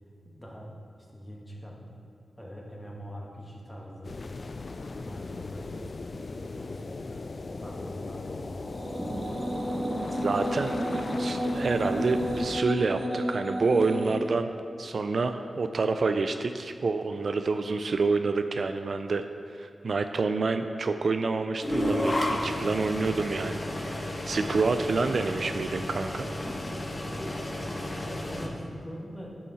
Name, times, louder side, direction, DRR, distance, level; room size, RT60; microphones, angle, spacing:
voice 1, 0.3-0.7 1.1-1.8 2.4-4.1 4.9-9.6 26.4-26.6 26.9-29.4, equal, 15° left, -3 dB, 1.9 m, -43 dB
sound 1, 4.0-12.6, left 3 dB, 55° left, 0.4 m, -38 dB
sound 2, 8.6-14.1, equal, 30° right, 1.2 m, -31 dB
voice 2, 10.1-14.5 14.8-26.3, right 4 dB, 65° right, 8 dB, 0.4 m, -28 dB
sound 3, 21.6-28.5, left 1 dB, 35° left, 1.2 m, -32 dB
10.5 x 5.5 x 4.3 m, 2.3 s
cardioid pair, 50°, 0 cm